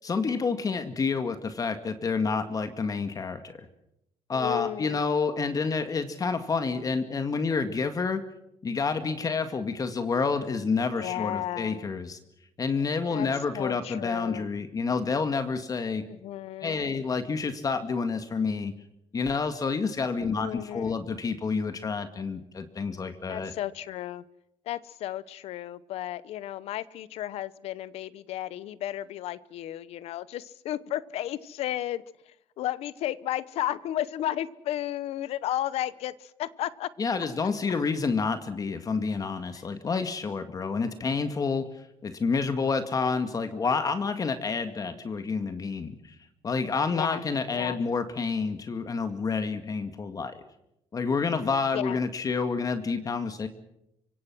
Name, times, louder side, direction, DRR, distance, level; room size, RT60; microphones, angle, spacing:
voice 1, 0.0-3.6 4.3-8.2 8.6-12.2 12.6-16.0 16.6-18.7 19.1-23.5 37.0-41.7 42.0-46.0 46.4-50.4 50.9-53.5, left 4 dB, 35° left, 9 dB, 2.0 m, -29 dB
voice 2, 4.3-5.0 10.9-11.9 13.1-13.3 13.5-14.5 16.0-17.0 20.2-21.0 23.3-24.2 24.7-32.0 32.6-36.9 46.9-47.2 47.5-47.8 51.7-52.0, left 12 dB, 75° left, 18 dB, 0.9 m, -33 dB
26.0 x 24.0 x 6.2 m, 0.84 s
cardioid pair, 105°, 10 cm